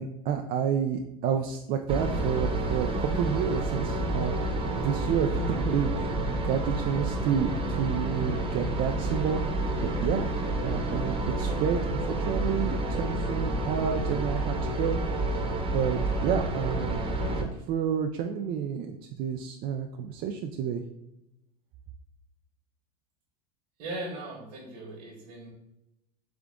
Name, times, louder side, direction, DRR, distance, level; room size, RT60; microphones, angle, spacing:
voice 1, 0.0-4.3 4.7-7.5 7.8-9.4 10.0-10.3 10.6-15.0 15.3-15.4 15.7-20.8, right 8 dB, 45° right, 5 dB, 0.4 m, -30 dB
sound 1, 1.9-17.4, right 2 dB, 30° right, 0.9 m, -29 dB
voice 2, 23.8-25.5, right 2 dB, 65° right, -3 dB, 1.3 m, -38 dB
3.7 x 3.3 x 3.5 m, 0.88 s
hypercardioid pair, 95°, 20 cm